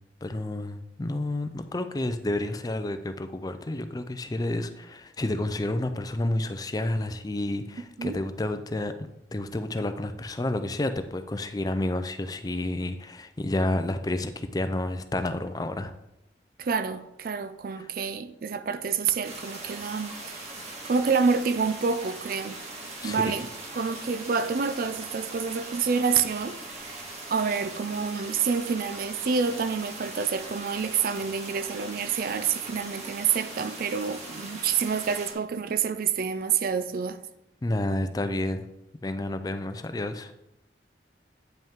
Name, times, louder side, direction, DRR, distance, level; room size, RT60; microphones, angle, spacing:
voice 1, 0.2-15.9 17.8-17.9 23.0-23.3 37.6-38.7 39.0-40.3, left 1 dB, 20° left, 0.4 m, -30 dB
voice 2, 16.6-20.5 20.8-22.6 23.0-23.5 23.7-27.0 27.3-37.2, right 6 dB, 55° right, 0.4 m, -28 dB
sound 1, 19.2-35.3, right 2 dB, 40° right, 1.5 m, -40 dB
9.0 x 5.5 x 3.6 m
head